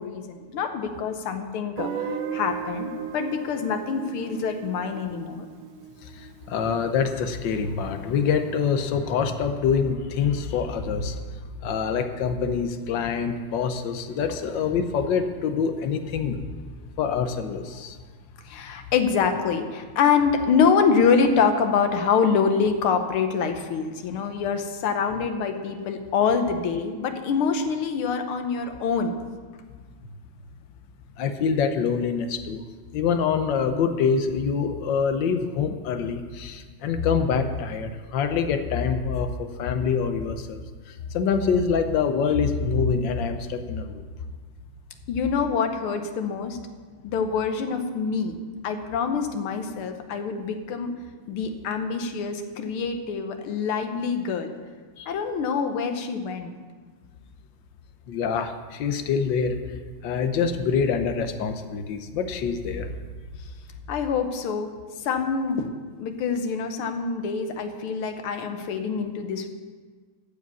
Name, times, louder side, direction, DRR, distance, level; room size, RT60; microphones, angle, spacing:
voice 1, 0.0-5.5 18.5-29.2 45.1-46.6 47.0-48.4 48.6-50.9 51.3-54.5 55.1-56.6 63.9-64.7 65.0-69.5, left 6 dB, 85° left, 7 dB, 1.8 m, -25 dB
Guitar, 1.8-6.6, right 6 dB, 75° right, 1.7 m, -35 dB
voice 2, 6.0-11.2 11.6-16.4 17.0-18.0 31.2-32.6 32.9-40.6 41.1-44.0 55.0-55.1 58.1-59.6 60.0-62.9, left 6 dB, 65° left, 8 dB, 1.4 m, -25 dB
13.5 x 5.0 x 8.2 m, 1.5 s
omnidirectional pair, 2.3 m